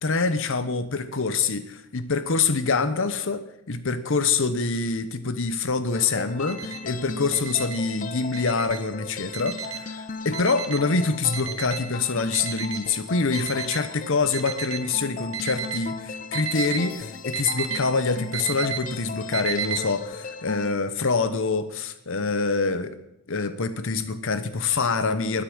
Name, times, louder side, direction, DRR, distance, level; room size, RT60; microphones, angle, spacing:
voice 1, 0.0-22.9 23.3-25.4, left 4 dB, 60° left, 12 dB, 1.0 m, -25 dB
sound 1, 5.9-20.7, left 4 dB, 35° left, 0.6 m, -37 dB
Alarm, 6.5-6.8 7.3-7.8 8.3-8.8 9.3-9.8 10.3-10.8 11.3-11.8 12.3-12.8 13.3-13.8 14.3-14.8 15.3-15.8 16.3-16.8 17.3-17.8 18.3-18.8 19.3-19.8, right 9 dB, 65° right, 1.3 m, -32 dB
12.0 x 9.8 x 6.3 m, 0.83 s
head